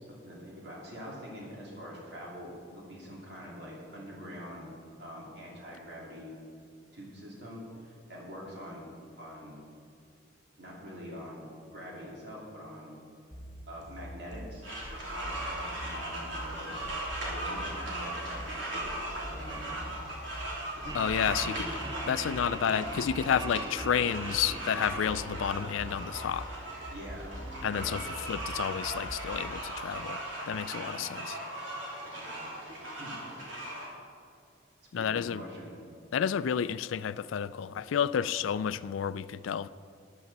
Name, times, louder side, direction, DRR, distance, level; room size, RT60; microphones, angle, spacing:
voice 1, 0.1-4.7 5.0-6.4 6.9-8.9 9.2-9.6 10.6-12.9 13.7-14.7 15.1-19.9 20.7-20.9 26.9-27.4 27.7-28.1 30.7-30.9 32.0-32.5 33.0-33.1 34.9-35.7, equal, 60° right, -4 dB, 2.9 m, -45 dB
sound 1, 13.3-29.3, equal, 20° left, 2.7 m, -44 dB
sound 2, 14.6-33.8, right 1 dB, 80° right, 3.2 m, -38 dB
voice 2, 20.9-21.7 22.1-26.5 27.6-31.4 34.9-35.4 36.1-39.7, left 8 dB, 90° left, 16 dB, 0.4 m, -31 dB
Laughter, 20.9-27.0, right 3 dB, 20° right, 0.4 m, -44 dB
13.5 x 11.5 x 4.1 m, 2.4 s
head